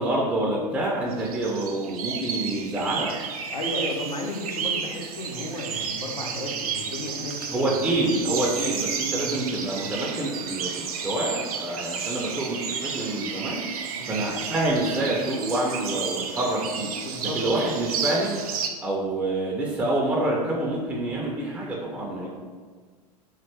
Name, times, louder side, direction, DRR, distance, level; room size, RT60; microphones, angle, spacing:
voice 1, 0.0-3.1 7.5-13.6 14.1-17.1 17.3-22.3, right 1 dB, 5° right, -3 dB, 0.4 m, -27 dB
sound 1, 1.1-18.7, right 6 dB, 65° right, 0.4 m, -32 dB
voice 2, 3.5-7.8 9.2-9.4 13.9-14.2 17.0-17.4 22.2-22.3, left 1 dB, 85° left, 1 dB, 0.6 m, -34 dB
3.2 x 2.4 x 3.2 m, 1.5 s
figure-of-eight pair, 85°, 20 cm